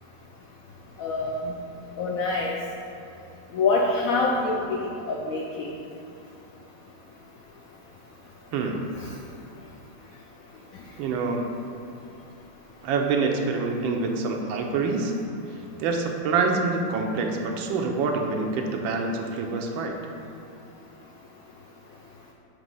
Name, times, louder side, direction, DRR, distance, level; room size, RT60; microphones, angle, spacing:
voice 1, 1.0-1.5 2.0-2.6 3.5-4.8 5.1-5.7 9.0-9.1, left 3 dB, 80° left, -1 dB, 0.7 m, -25 dB
voice 2, 11.0-11.5 12.8-15.1 15.8-19.9, right 4 dB, 90° right, 2 dB, 1.4 m, -26 dB
7.4 x 2.9 x 5.4 m, 2.7 s
omnidirectional pair, 2.1 m